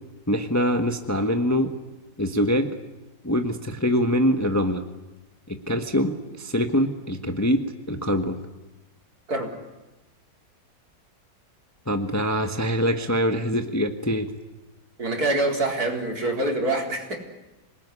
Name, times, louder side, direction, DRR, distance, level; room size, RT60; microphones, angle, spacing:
voice 1, 0.3-1.7 2.2-2.7 3.2-4.9 5.5-8.4 11.9-14.3, equal, 10° left, 6 dB, 1.3 m, -24 dB
voice 2, 15.0-17.2, right 2 dB, 55° right, 2 dB, 4.7 m, -25 dB
27.0 x 19.5 x 9.9 m, 1.1 s
omnidirectional pair, 1.9 m